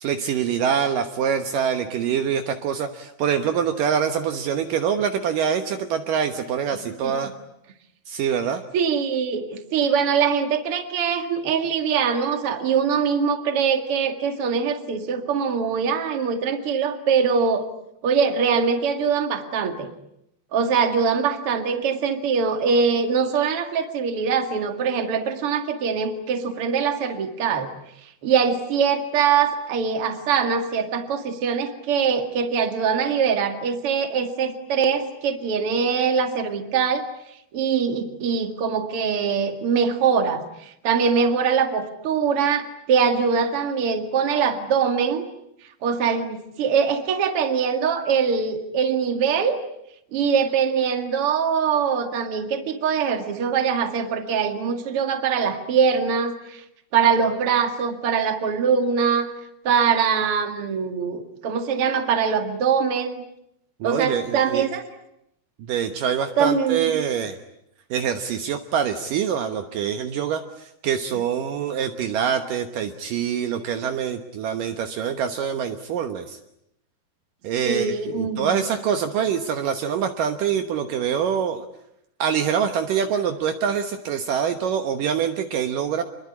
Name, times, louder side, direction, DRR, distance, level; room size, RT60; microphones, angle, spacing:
voice 1, 0.0-7.3 8.1-8.6 63.8-64.7 65.6-67.4 67.9-76.4 77.4-81.6 82.2-86.0, right 7 dB, 70° right, 7 dB, 2.7 m, -25 dB
voice 2, 6.7-7.1 8.7-17.7 18.0-19.9 20.5-27.7 28.0-37.1 37.5-45.3 45.8-49.6 50.1-56.6 56.9-59.3 59.6-63.2 63.8-64.8 66.4-66.9 77.6-78.6, right 6 dB, 45° right, 7 dB, 2.6 m, -23 dB
27.0 x 22.0 x 9.8 m, 0.80 s
omnidirectional pair, 4.3 m